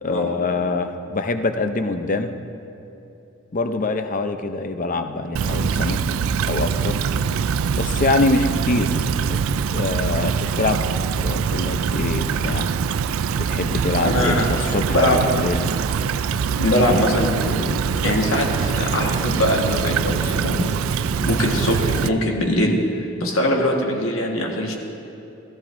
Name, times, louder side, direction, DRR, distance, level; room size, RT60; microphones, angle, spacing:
voice 1, 0.0-2.4 3.5-6.0 6.4-7.0 7.8-8.9 9.3-9.4 9.7-10.8 11.1-12.7 13.4-15.6 23.5-23.7, left 3 dB, 40° left, 8 dB, 0.6 m, -24 dB
Stream / Trickle dribble, 5.4-22.1, right 6 dB, 80° right, 0.4 m, -23 dB
voice 2, 14.0-14.4 14.9-15.2 16.6-20.6 21.2-24.7, left 1 dB, 80° left, 0 dB, 1.5 m, -22 dB
15.0 x 14.0 x 2.6 m, 2.9 s
head